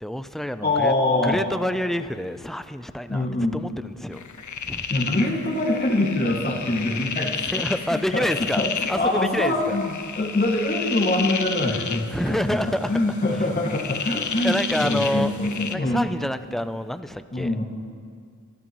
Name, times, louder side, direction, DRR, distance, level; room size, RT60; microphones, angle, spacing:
voice 1, 0.0-0.9 1.2-3.3 3.5-4.2 4.7-4.9 7.5-9.8 12.1-13.0 13.3-13.4 14.4-15.4 15.7-17.5, equal, ahead, 11 dB, 0.4 m, -27 dB
voice 2, 0.6-1.4 3.1-3.6 4.9-7.6 7.9-8.3 8.6-8.7 8.9-16.0 17.3-17.6, left 2 dB, 30° left, -2 dB, 1.9 m, -24 dB
sound 1, 4.1-15.8, left 6 dB, 65° left, 0.7 m, -32 dB
23.0 x 13.0 x 3.1 m, 2.1 s
wide cardioid pair, 75°, 32 cm